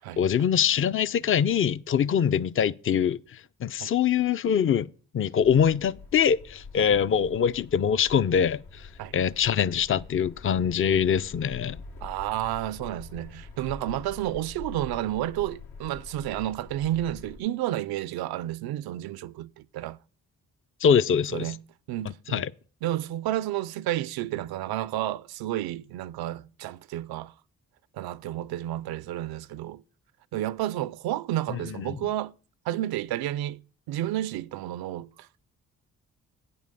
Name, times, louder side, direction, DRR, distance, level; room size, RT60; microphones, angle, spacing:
voice 1, 0.2-4.9 5.1-8.9 9.1-11.8 20.8-21.5 22.3-22.5 31.8-32.0, left 8 dB, 35° left, 0.5 m, -24 dB
sound 1, 5.4-17.4, left 4 dB, 80° left, 1.7 m, -45 dB
voice 2, 12.0-20.0 21.3-21.6 21.9-22.5 22.8-27.3 27.9-29.8 30.3-32.3 32.7-33.6 33.9-35.3, right 13 dB, 80° right, 0.5 m, -31 dB
9.1 x 5.4 x 6.6 m
supercardioid pair, 50°, 36 cm